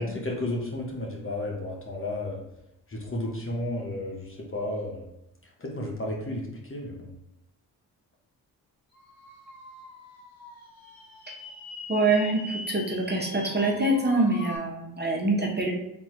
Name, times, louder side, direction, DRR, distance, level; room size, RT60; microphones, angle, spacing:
voice 1, 0.0-2.4 2.9-5.1 5.4-7.1, left 1 dB, 30° left, -2 dB, 1.3 m, -33 dB
sound 1, 8.9-14.6, left 2 dB, 55° left, 1.5 m, -42 dB
voice 2, 11.9-15.7, right 2 dB, 25° right, -2 dB, 1.3 m, -25 dB
3.7 x 3.0 x 4.5 m, 0.85 s
supercardioid pair, 50°, 42 cm